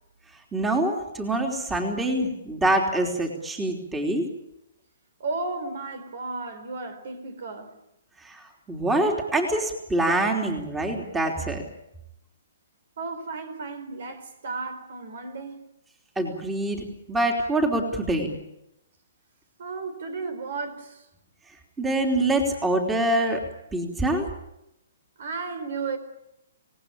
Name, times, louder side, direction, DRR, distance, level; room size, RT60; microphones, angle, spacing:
voice 1, 0.5-4.3 8.2-8.4 8.7-11.6 16.1-18.3 21.8-23.4 23.7-24.3, right 1 dB, 10° right, 3.3 m, -25 dB
voice 2, 5.2-7.7 13.0-15.6 19.6-21.1 25.2-26.0, right 3 dB, 65° right, 4.5 m, -34 dB
26.5 x 18.5 x 8.7 m
hypercardioid pair, 145°, 0 cm